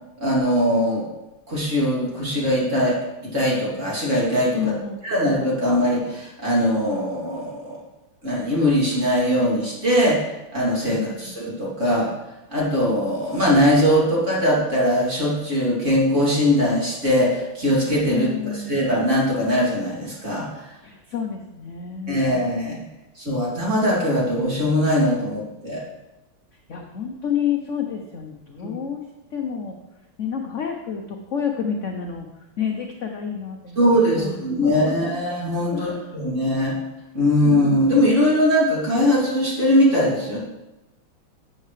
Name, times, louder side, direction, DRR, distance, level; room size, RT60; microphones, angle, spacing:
voice 1, 0.2-1.0 1.5-3.0 3.3-4.7 5.0-7.8 8.2-12.1 12.5-20.7 22.1-22.8 23.2-25.8 28.6-28.7 33.7-36.7 37.1-40.4, equal, 35° right, -6 dB, 3.2 m, -21 dB
voice 2, 4.5-5.0 10.9-11.3 18.1-18.8 20.8-22.3 26.7-29.0 29.3-29.8 30.2-32.3 32.6-35.2 35.7-36.2, left 7 dB, 65° left, 3 dB, 0.7 m, -29 dB
13.0 x 7.8 x 3.3 m, 0.98 s
omnidirectional pair, 2.3 m